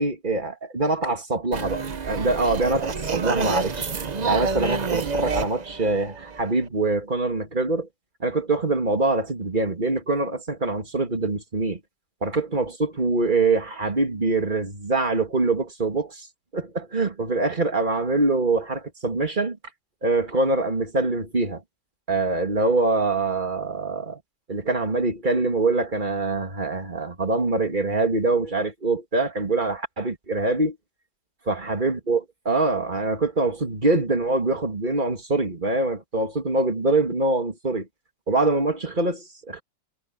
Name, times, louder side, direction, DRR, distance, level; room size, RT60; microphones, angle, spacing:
voice 1, 0.0-3.9 4.2-7.9 8.2-11.8 12.2-16.3 16.5-19.6 20.0-21.6 22.1-24.2 24.5-30.8 31.5-37.9 38.3-39.6, right 2 dB, 25° right, 2.7 m, -24 dB
sound 1, 1.5-6.7, right 5 dB, 45° right, 0.5 m, -28 dB
omnidirectional pair, 2.0 m